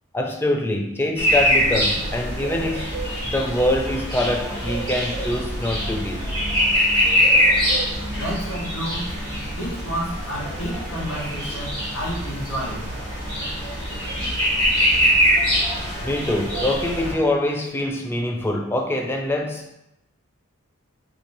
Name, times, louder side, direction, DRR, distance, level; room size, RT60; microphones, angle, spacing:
voice 1, 0.1-3.0 3.2-6.2 16.0-19.7, left 1 dB, 10° left, 2 dB, 0.3 m, -24 dB
sound 1, 1.2-17.1, equal, 20° right, 1.2 m, -23 dB
voice 2, 8.1-9.1 9.5-12.9, equal, 65° left, -4 dB, 1.0 m, -30 dB
2.7 x 2.5 x 4.0 m, 0.84 s
head